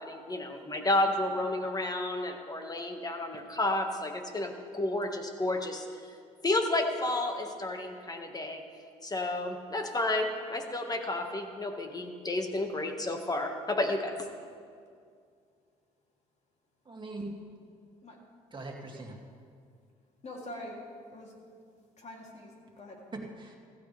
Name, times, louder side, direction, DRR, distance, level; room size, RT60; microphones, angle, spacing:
voice 1, 0.0-5.8 6.4-8.6 9.0-14.2, left 2 dB, 20° left, 4 dB, 1.8 m, -31 dB
voice 2, 16.8-17.4 18.5-19.2 23.1-23.6, right 2 dB, 30° right, 0 dB, 2.5 m, -41 dB
voice 3, 20.2-20.8 21.1-21.3 22.0-23.0, left 1 dB, 40° left, -1 dB, 3.2 m, -44 dB
15.5 x 15.0 x 3.5 m, 2.2 s
supercardioid pair, 65°, 17 cm